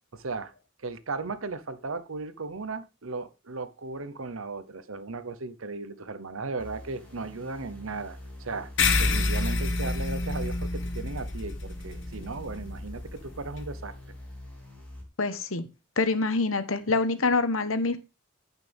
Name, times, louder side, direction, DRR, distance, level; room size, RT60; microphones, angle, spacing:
voice 1, 0.1-0.5 0.8-8.7 9.0-13.9, right 3 dB, 75° right, 1.0 m, -36 dB
sound 1, 6.6-15.0, left 1 dB, 5° left, 3.6 m, -45 dB
sound 2, 8.8-13.6, left 3 dB, 60° left, 1.4 m, -28 dB
voice 2, 15.2-15.7 16.0-18.0, left 3 dB, 80° left, 1.1 m, -25 dB
15.0 x 5.9 x 3.5 m
head